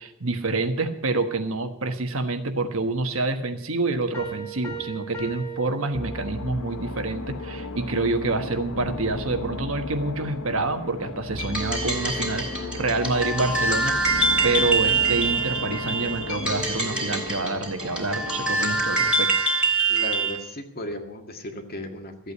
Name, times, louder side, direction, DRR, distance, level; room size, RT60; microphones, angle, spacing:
voice 1, 0.0-14.0 14.4-19.3, right 3 dB, 70° right, 7 dB, 1.4 m, -27 dB
Piano, 4.1-6.6, right 5 dB, 10° left, 2.4 m, -38 dB
sound 1, 5.9-19.3, left 2 dB, 80° left, 1.1 m, -35 dB
sound 2, 11.4-20.4, right 3 dB, 5° right, 2.9 m, -25 dB
voice 2, 19.9-22.3, left 1 dB, 45° left, 4 dB, 1.9 m, -35 dB
14.5 x 8.4 x 8.4 m, 0.78 s
head